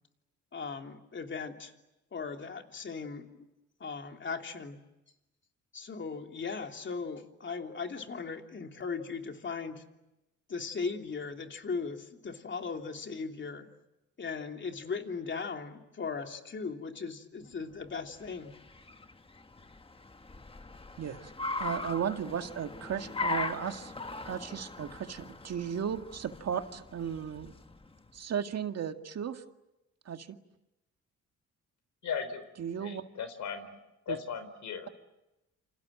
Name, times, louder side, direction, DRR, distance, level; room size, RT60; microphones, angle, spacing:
voice 1, 0.5-1.7 2.1-3.5 3.8-4.8 5.7-9.8 10.5-13.7 14.2-18.5, left 5 dB, 40° left, 4 dB, 3.2 m, -38 dB
Car, 17.8-28.1, left 3 dB, 20° left, 1.6 m, -40 dB
voice 2, 21.0-21.3 21.6-23.9 24.3-27.5 28.1-29.4 30.1-30.4 32.6-33.0 34.1-34.2, right 8 dB, 55° right, 7 dB, 2.0 m, -35 dB
voice 3, 32.0-32.4 32.8-33.7 34.1-34.9, left 7 dB, 70° left, 11 dB, 4.1 m, -37 dB
28.5 x 27.0 x 7.7 m, 0.95 s
cardioid pair, 90°, 30 cm